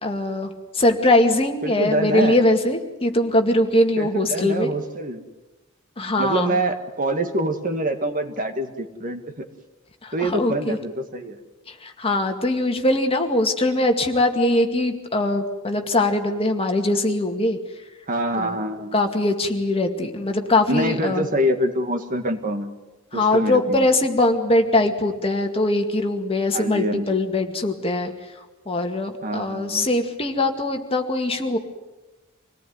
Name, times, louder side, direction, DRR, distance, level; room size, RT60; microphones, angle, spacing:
voice 1, 0.0-4.7 6.0-6.6 10.0-10.8 11.7-17.6 18.4-18.6 18.9-21.2 23.1-31.6, left 1 dB, 30° left, 4 dB, 2.2 m, -22 dB
voice 2, 1.6-2.4 4.0-5.2 6.2-9.5 10.1-11.4 18.1-19.0 20.7-22.7 23.1-23.9 26.5-27.2 29.2-29.9, right 1 dB, 40° right, 6 dB, 2.0 m, -25 dB
26.5 x 18.5 x 9.6 m, 1.1 s
head